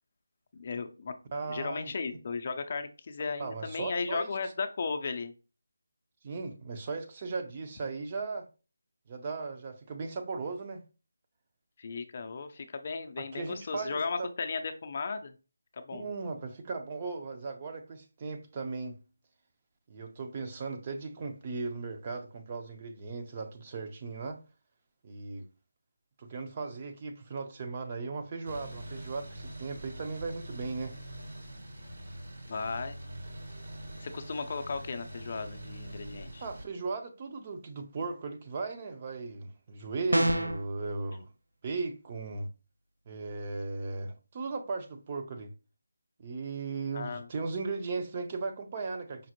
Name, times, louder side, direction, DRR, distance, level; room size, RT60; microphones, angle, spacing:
voice 1, 0.5-1.1 1.4-5.3 11.8-15.3 15.7-16.1 32.5-33.0 34.0-36.4 46.9-47.3, left 4 dB, 40° left, 0.4 m, -35 dB
voice 2, 1.3-1.9 3.4-4.3 6.2-8.5 9.1-10.8 13.2-14.3 15.9-19.0 19.9-24.4 25.0-25.5 26.2-31.0 36.4-41.3 41.6-42.5 43.1-45.5 46.2-49.3, right 4 dB, 30° right, 0.5 m, -37 dB
sound 1, 28.4-36.7, right 1 dB, 60° right, 1.2 m, -44 dB
sound 2, 40.1-40.7, right 1 dB, 85° right, 0.6 m, -25 dB
5.0 x 2.0 x 2.9 m
figure-of-eight pair, 165°, 0 cm